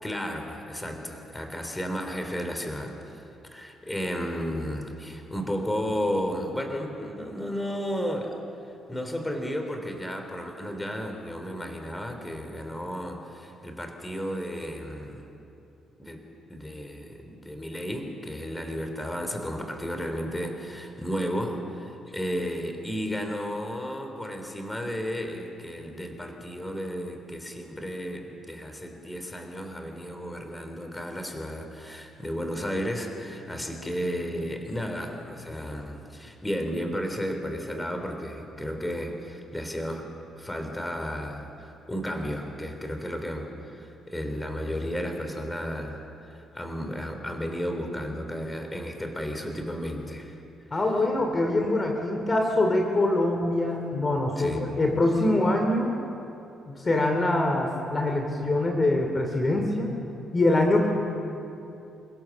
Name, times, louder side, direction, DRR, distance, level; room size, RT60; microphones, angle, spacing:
voice 1, 0.0-2.9 3.5-8.4 8.9-15.2 16.0-16.2 16.5-40.1 40.4-50.4 54.4-54.6, equal, 10° left, 4 dB, 3.4 m, -33 dB
voice 2, 50.7-55.9 56.7-59.9 60.3-60.9, left 2 dB, 30° left, 3 dB, 2.7 m, -24 dB
28.0 x 17.0 x 7.3 m, 2.8 s
cardioid pair, 90°, 0 cm